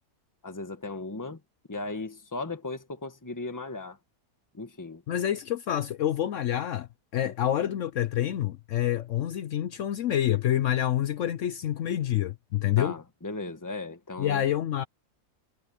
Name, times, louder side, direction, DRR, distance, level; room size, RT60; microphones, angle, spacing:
voice 1, 0.4-1.4 1.7-4.0 4.5-5.0 7.2-7.3 12.8-14.4, left 3 dB, 15° left, 1.5 m, -37 dB
voice 2, 5.1-13.0 14.2-14.8, left 11 dB, 65° left, 0.9 m, -27 dB
omnidirectional pair, 1.5 m